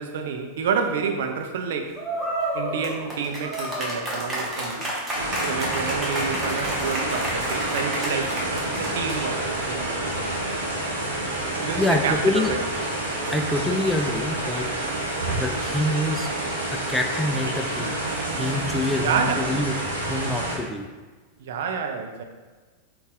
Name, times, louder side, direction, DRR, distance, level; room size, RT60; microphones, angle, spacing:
voice 1, 0.0-2.0 2.5-4.8 5.5-8.4 8.8-9.9 11.6-12.6 19.0-19.6 21.4-22.2, right 6 dB, 55° right, 4 dB, 0.4 m, -29 dB
sound 1, 2.0-9.4, right 1 dB, 20° right, 1.0 m, -30 dB
sound 2, 5.1-20.6, right 1 dB, 75° right, 0.8 m, -28 dB
voice 2, 11.8-12.5 13.3-14.7 15.4-16.3 16.7-17.9 18.3-19.7 20.1-20.8, left 1 dB, 5° left, 3 dB, 0.4 m, -26 dB
3.9 x 2.3 x 3.7 m, 1.3 s
figure-of-eight pair, 90°, 0 cm